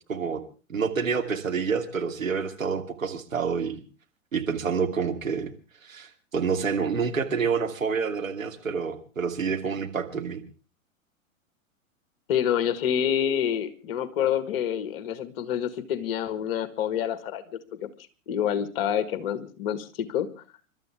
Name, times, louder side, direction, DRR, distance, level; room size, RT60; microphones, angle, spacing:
voice 1, 0.1-0.4 0.7-3.8 4.3-5.5 5.8-10.4, right 5 dB, 70° right, 4 dB, 2.7 m, -28 dB
voice 2, 12.3-17.9 18.3-20.3, left 9 dB, 45° left, 12 dB, 1.9 m, -27 dB
29.5 x 13.0 x 3.6 m, 0.36 s
figure-of-eight pair, 100°, 41 cm